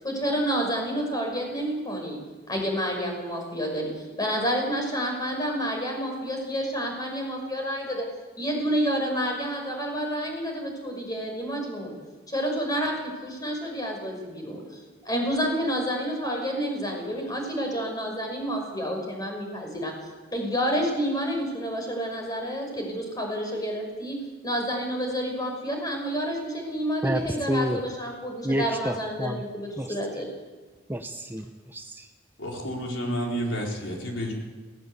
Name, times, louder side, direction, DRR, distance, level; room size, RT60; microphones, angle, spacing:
voice 1, 0.0-2.2 2.5-8.0 8.4-11.9 12.3-19.9 20.3-24.2 24.4-30.3, equal, 20° left, 1 dB, 6.0 m, -29 dB
voice 2, 27.0-27.8 28.4-29.4 29.8-29.9 30.9-32.1, equal, 10° right, 6 dB, 0.9 m, -29 dB
voice 3, 32.4-34.3, equal, 75° left, 0 dB, 4.9 m, -30 dB
18.5 x 18.0 x 8.1 m, 1.4 s
head